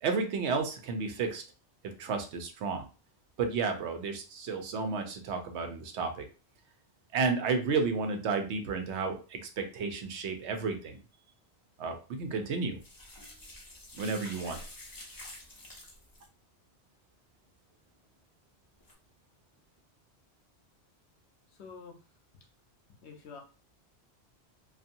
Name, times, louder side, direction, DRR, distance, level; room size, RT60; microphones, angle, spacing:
voice 1, 0.0-1.4 1.8-2.9 3.4-6.3 7.1-11.0 11.8-12.8 13.9-14.6, right 4 dB, 80° right, 6 dB, 0.9 m, -32 dB
sound 1, 12.8-16.3 18.8-18.9, left 1 dB, 25° left, 0.5 m, -48 dB
voice 2, 21.5-22.0 23.0-23.4, left 5 dB, 75° left, 2 dB, 1.0 m, -47 dB
2.7 x 2.4 x 2.5 m, 0.33 s
omnidirectional pair, 1.1 m